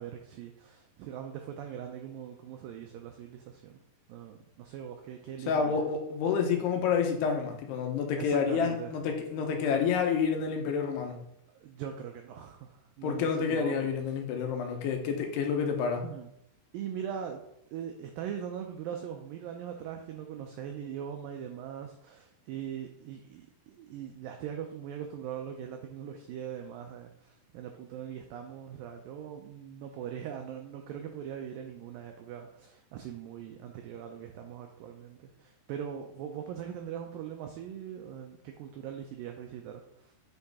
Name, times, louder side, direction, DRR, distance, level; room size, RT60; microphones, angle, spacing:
voice 1, 0.0-3.8 4.1-5.8 8.1-8.9 11.5-13.9 16.0-16.3 16.7-17.4 17.7-40.1, right 9 dB, 90° right, 4 dB, 2.0 m, -41 dB
voice 2, 5.5-11.2 13.0-16.0, left 6 dB, 85° left, 3 dB, 2.9 m, -29 dB
8.1 x 3.9 x 3.5 m, 0.76 s
omnidirectional pair, 4.6 m